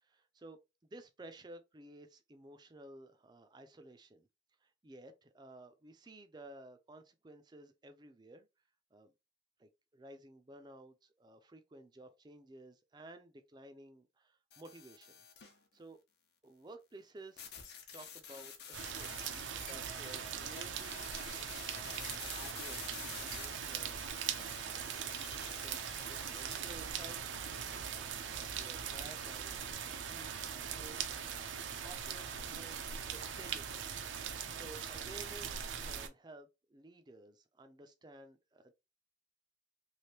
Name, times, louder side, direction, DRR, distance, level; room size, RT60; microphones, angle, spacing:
voice 1, 0.0-4.3 4.6-8.5 8.9-9.1 9.6-15.2 15.7-16.0 16.4-17.5 17.9-22.0 22.3-24.7 25.6-25.8 26.1-28.0 28.5-29.7 30.1-31.0 31.8-33.9 34.3-38.7, right 1 dB, 25° right, 0.4 m, -55 dB
sound 1, 14.5-15.6 17.4-26.6, left 7 dB, 65° left, 0.7 m, -50 dB
sound 2, 18.7-36.1, right 7 dB, 90° right, 0.5 m, -41 dB
3.2 x 2.5 x 2.8 m
head